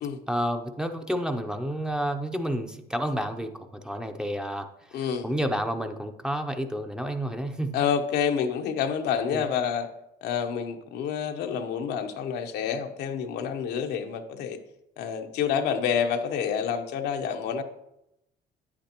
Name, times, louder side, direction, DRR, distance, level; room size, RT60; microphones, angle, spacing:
voice 1, 0.3-7.8 9.3-9.5, equal, 5° right, 6 dB, 0.6 m, -30 dB
voice 2, 4.9-5.2 7.7-9.9 10.2-14.6 15.0-17.6, left 7 dB, 80° left, 5 dB, 0.9 m, -28 dB
9.4 x 8.5 x 2.9 m, 0.85 s
cardioid pair, 110°, 17 cm